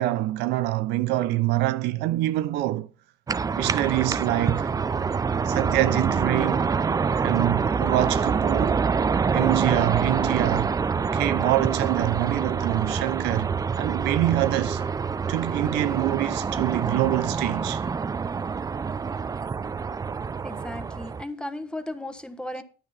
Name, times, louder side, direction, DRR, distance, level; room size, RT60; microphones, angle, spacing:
voice 1, 0.0-2.9 3.5-4.7 5.5-6.7 7.1-8.9 9.3-10.8 11.1-14.8 15.3-17.8, right 16 dB, 90° right, 0.6 m, -25 dB
sound 1, 3.3-21.2, right 5 dB, 20° right, 0.4 m, -26 dB
voice 2, 20.4-22.6, left 1 dB, 5° left, 1.1 m, -35 dB
10.0 x 8.5 x 4.2 m
cardioid pair, 110°, 17 cm